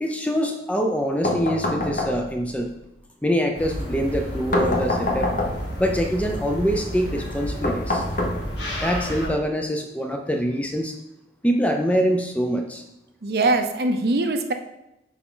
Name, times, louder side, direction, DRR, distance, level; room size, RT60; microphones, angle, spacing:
voice 1, 0.0-2.7 3.2-5.3 5.8-8.0 8.8-10.9 11.4-12.8, equal, 10° left, 3 dB, 0.4 m, -24 dB
sound 1, 1.2-2.5 4.5-5.8 7.6-8.8, left 1 dB, 45° left, 0.8 m, -25 dB
sound 2, 3.5-9.3, equal, 80° left, 1.7 m, -31 dB
voice 2, 13.2-14.5, right 2 dB, 60° right, 6 dB, 0.6 m, -22 dB
6.1 x 4.4 x 3.8 m, 0.89 s
head